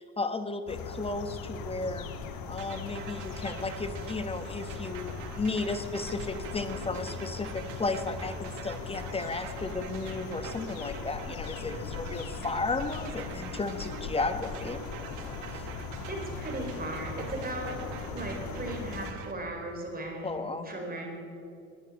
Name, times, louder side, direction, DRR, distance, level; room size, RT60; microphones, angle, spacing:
voice 1, 0.0-2.1 2.5-14.8 15.5-15.7 20.2-20.7, left 3 dB, 15° left, 9 dB, 1.2 m, -34 dB
sound 1, 0.7-19.1, left 4 dB, 60° left, 1.8 m, -39 dB
sound 2, 2.6-19.3, right 12 dB, 80° right, 1.1 m, -47 dB
voice 2, 16.1-17.8 18.1-20.3 20.6-21.1, right 2 dB, 25° right, 2 dB, 4.1 m, -37 dB
20.5 x 10.0 x 5.4 m, 2.7 s
supercardioid pair, 90°, 39 cm